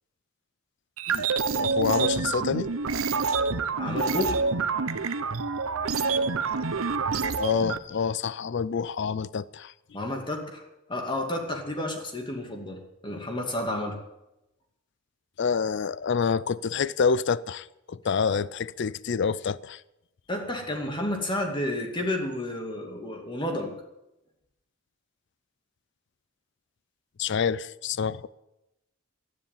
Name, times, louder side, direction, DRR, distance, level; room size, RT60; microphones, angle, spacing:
sound 1, 1.0-7.8, right 4 dB, 85° right, 0.9 m, -27 dB
voice 1, 1.6-2.7 7.4-9.7 15.4-19.8 27.2-28.3, left 6 dB, 55° left, 0.4 m, -27 dB
voice 2, 3.8-4.4 9.9-10.6 10.9-14.0 20.3-23.8, left 1 dB, 25° left, 2.3 m, -31 dB
12.5 x 10.0 x 8.9 m
head